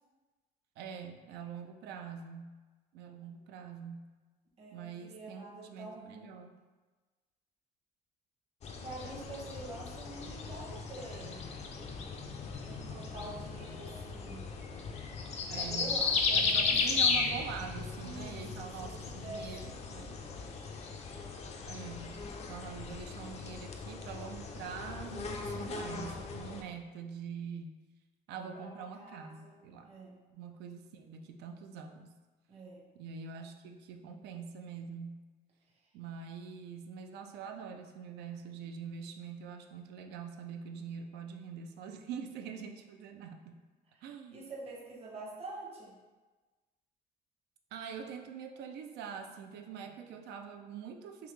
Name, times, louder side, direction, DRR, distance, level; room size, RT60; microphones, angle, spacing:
voice 1, 0.8-2.6 2.9-4.1 4.7-6.5 15.5-16.0 16.3-20.2 21.6-27.8 28.3-29.9 30.3-32.2 32.9-35.2 35.9-43.6 44.0-44.5 47.7-51.3, right 6 dB, 80° right, 4 dB, 0.4 m, -44 dB
voice 2, 4.6-6.4 8.8-11.4 12.6-14.5 15.4-16.8 17.9-19.7 25.0-25.9 28.4-29.5 29.8-30.2 32.5-32.8 43.9-44.0 44.3-46.0, right 2 dB, 40° right, -3 dB, 0.8 m, -47 dB
sound 1, 8.6-26.6, left 4 dB, 40° left, 0.4 m, -36 dB
3.6 x 2.8 x 3.1 m, 1.3 s
cardioid pair, 110°, 17 cm